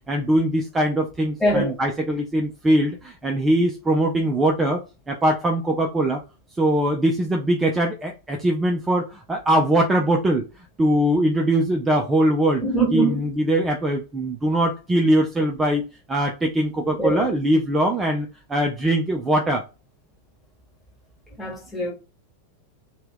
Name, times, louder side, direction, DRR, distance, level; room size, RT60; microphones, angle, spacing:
voice 1, 0.1-4.8 5.1-6.2 6.6-10.5 10.8-12.6 12.9-19.6, right 1 dB, 15° right, 0.4 m, -21 dB
voice 2, 1.4-1.8 12.6-13.3 17.0-17.3 21.4-21.9, right 2 dB, 10° left, 1.3 m, -23 dB
2.8 x 2.2 x 3.4 m
figure-of-eight pair, 90°, 0 cm